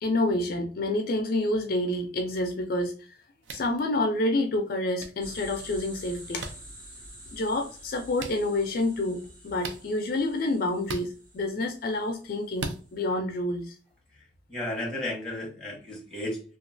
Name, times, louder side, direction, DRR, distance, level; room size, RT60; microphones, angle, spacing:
voice 1, 0.0-2.9 3.5-6.5 7.3-9.2 9.4-13.7, left 2 dB, 50° left, 5 dB, 0.4 m, -28 dB
sound 1, 3.4-3.7 5.0-5.1 6.4-6.5 8.2-8.3 9.6-9.8 10.8-11.1 12.6-12.8, right 3 dB, 70° right, 0.4 m, -36 dB
sound 2, 5.2-13.0, equal, 45° right, 1.4 m, -48 dB
voice 2, 14.1-16.4, left 1 dB, ahead, -2 dB, 0.9 m, -34 dB
3.0 x 2.3 x 2.5 m, 0.39 s
head